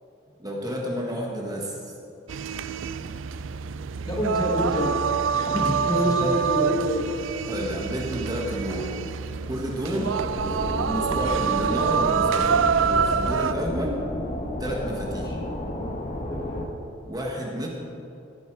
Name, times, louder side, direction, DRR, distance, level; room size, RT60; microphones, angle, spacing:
voice 1, 0.4-1.8 5.9-6.4 7.5-8.9 9.5-10.2 10.8-14.0 14.6-15.3 17.0-17.7, equal, 20° right, -1 dB, 1.5 m, -31 dB
sound 1, 2.3-13.5, right 6 dB, 70° right, 0.4 m, -26 dB
voice 2, 2.8-5.0 5.3-7.1 9.8-10.0 15.1-15.4 16.3-16.7, left 1 dB, 20° left, -1 dB, 1.7 m, -29 dB
sound 2, 10.2-16.7, left 1 dB, 40° left, 1.3 m, -32 dB
16.0 x 9.6 x 4.6 m, 2.6 s
head